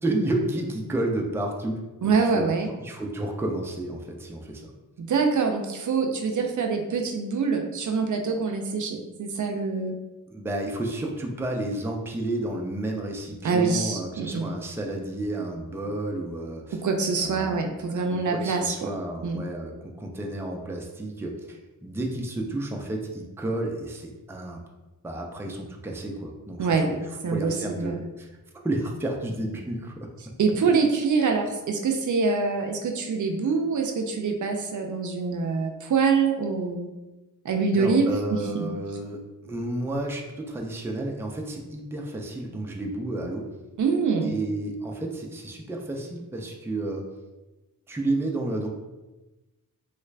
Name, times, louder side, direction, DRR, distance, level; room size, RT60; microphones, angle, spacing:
voice 1, 0.0-4.7 10.3-16.8 17.1-24.6 25.0-28.3 28.6-30.1 37.7-43.5 44.2-47.1 47.9-48.7, right 1 dB, 5° right, 1 dB, 0.4 m, -31 dB
voice 2, 2.0-2.7 5.0-9.9 13.4-14.5 16.7-18.9 19.2-19.4 26.6-26.9 27.2-28.0 30.4-36.9 37.4-38.7 43.8-44.4, right 4 dB, 60° right, 3 dB, 0.5 m, -25 dB
3.1 x 2.4 x 3.2 m, 1.1 s
wide cardioid pair, 105°, 33 cm